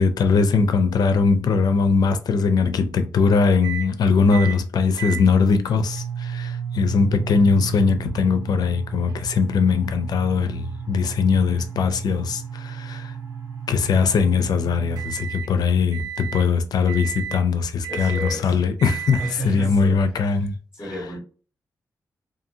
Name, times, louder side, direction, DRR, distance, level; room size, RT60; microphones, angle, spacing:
voice 1, 0.0-13.1 13.7-20.5 20.8-20.9, left 5 dB, 80° left, 0.4 m, -20 dB
sound 1, 3.6-3.9 4.3-4.6 5.0-15.5 15.9-16.5 16.9-17.4 17.8-18.4 18.8-19.3, right 8 dB, 80° right, 0.8 m, -33 dB
voice 2, 17.9-18.6 19.2-20.0 20.7-21.2, right 1 dB, 10° right, 1.3 m, -32 dB
2.7 x 2.6 x 2.6 m
wide cardioid pair, 145°, 7 cm